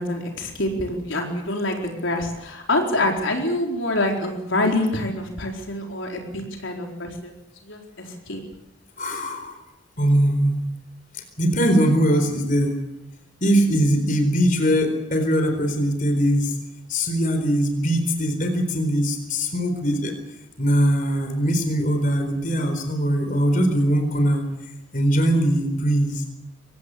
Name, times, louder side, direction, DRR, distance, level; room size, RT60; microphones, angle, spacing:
voice 1, 0.0-7.3 7.6-8.4, left 1 dB, 75° left, 1 dB, 4.4 m, -26 dB
voice 2, 9.0-9.6 10.0-10.7 11.1-12.8 13.4-16.6 16.9-20.1 20.6-24.4 24.9-26.2, equal, 40° left, 6 dB, 4.4 m, -21 dB
24.5 x 17.5 x 8.3 m, 0.89 s
head